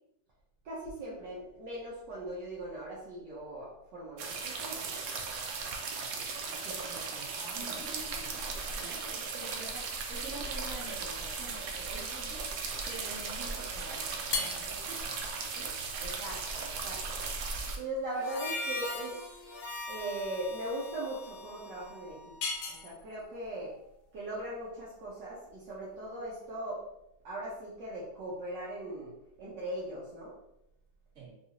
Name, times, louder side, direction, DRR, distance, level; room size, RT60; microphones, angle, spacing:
voice 1, 0.6-5.0 6.0-6.2 6.6-6.8 16.0-17.0 17.8-19.2 19.9-22.3 22.7-23.7 24.1-26.8 27.2-29.1 29.4-30.3, right 1 dB, 70° right, -7 dB, 1.4 m, -39 dB
sound 1, 4.2-17.8, right 4 dB, 85° right, 0.7 m, -37 dB
voice 2, 6.8-14.1 14.3-15.2 15.5-15.7 31.1-31.3, right 3 dB, 40° right, -7 dB, 1.6 m, -46 dB
sound 2, 14.3-26.6, left 4 dB, 75° left, 1.4 m, -43 dB
Harmonica, 18.1-22.8, left 2 dB, 60° left, 0.7 m, -41 dB
4.2 x 2.4 x 2.8 m, 0.81 s
omnidirectional pair, 2.1 m